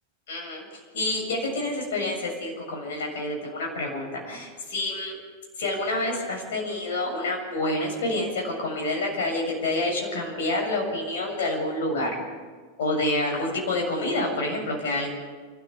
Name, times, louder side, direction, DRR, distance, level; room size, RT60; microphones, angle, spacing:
voice 1, 0.3-0.7 0.9-5.1 5.6-12.2 12.8-15.3, left 2 dB, 55° left, 0 dB, 7.3 m, -28 dB
28.0 x 13.5 x 7.3 m, 1.5 s
figure-of-eight pair, 90°, 0 cm